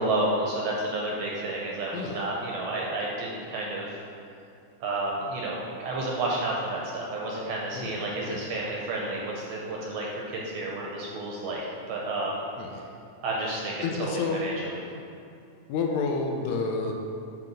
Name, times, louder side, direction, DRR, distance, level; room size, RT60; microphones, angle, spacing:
voice 1, 0.0-4.0 4.8-12.4 12.7-12.8 13.2-14.8, right 2 dB, 75° right, -3 dB, 1.6 m, -31 dB
voice 2, 1.9-2.2 7.7-8.5 12.6-12.8 13.8-14.4 15.7-16.9, left 4 dB, 80° left, 1 dB, 1.9 m, -30 dB
8.2 x 3.0 x 5.1 m, 2.6 s
omnidirectional pair, 3.5 m